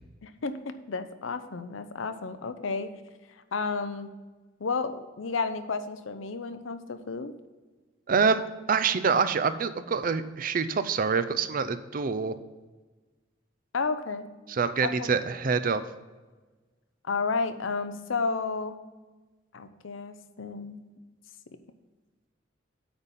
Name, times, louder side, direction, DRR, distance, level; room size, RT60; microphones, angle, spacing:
voice 1, 0.2-2.9 3.5-4.1 4.6-7.3 13.7-14.3 14.8-15.1 17.0-18.8 19.5-20.8, left 4 dB, 90° left, 10 dB, 0.7 m, -32 dB
voice 2, 8.1-8.4 8.7-12.3 14.5-15.8, right 5 dB, 45° right, 12 dB, 0.5 m, -26 dB
8.7 x 4.2 x 7.1 m, 1.3 s
head